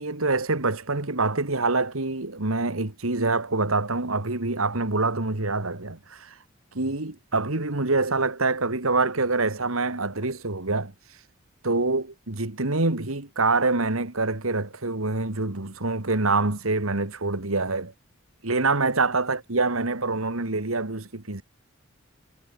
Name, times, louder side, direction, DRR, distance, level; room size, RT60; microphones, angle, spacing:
voice 1, 0.0-6.3 6.7-10.9 11.6-17.9 18.4-21.4, right 3 dB, 85° right, 2.3 m, -25 dB
head